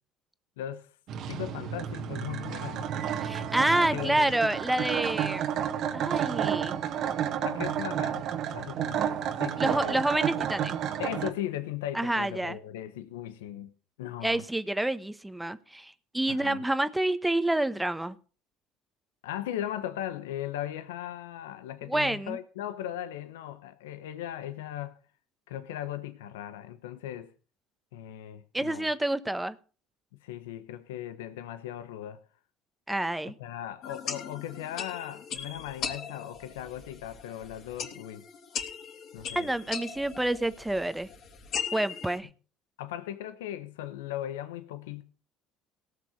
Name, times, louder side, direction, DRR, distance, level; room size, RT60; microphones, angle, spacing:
voice 1, 0.6-0.9 1.3-2.9 3.9-4.3 7.4-8.3 8.5-10.0 11.0-13.7 14.0-14.4 16.3-16.6 19.2-25.0 25.5-27.3 27.9-28.9 30.2-32.2 33.2-38.2 39.1-39.5 42.8-45.0, left 12 dB, 90° left, 1.0 m, -38 dB
sound 1, 1.1-11.3, right 9 dB, 60° right, 1.6 m, -31 dB
voice 2, 3.2-5.5 5.9-6.8 9.6-10.8 11.9-12.6 14.2-18.2 21.9-22.4 28.5-29.6 32.9-33.3 39.3-41.1 41.7-42.3, right 1 dB, 10° right, 1.2 m, -28 dB
sound 2, 33.8-42.2, left 7 dB, 55° left, 3.5 m, -39 dB
18.0 x 6.7 x 6.5 m
supercardioid pair, 80°, 0 cm